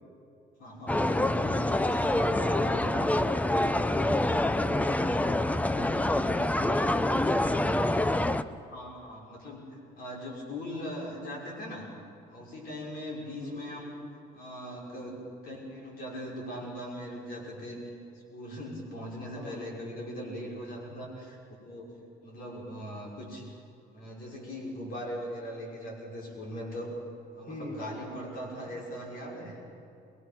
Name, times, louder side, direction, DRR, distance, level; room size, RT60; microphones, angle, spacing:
voice 1, 0.6-1.6 8.7-11.9 12.3-13.9 14.3-17.9 18.3-22.0 22.2-23.5 23.9-27.0 27.3-29.6, equal, 60° left, -2 dB, 5.9 m, -40 dB
sound 1, 0.9-8.4, left 1 dB, 10° left, 0.6 m, -26 dB
voice 2, 1.9-5.2 5.7-7.4 13.4-13.6 19.4-19.6 27.5-27.8, equal, 45° left, -1 dB, 5.4 m, -41 dB
23.0 x 22.0 x 6.1 m, 2.7 s
cardioid pair, 110°, 17 cm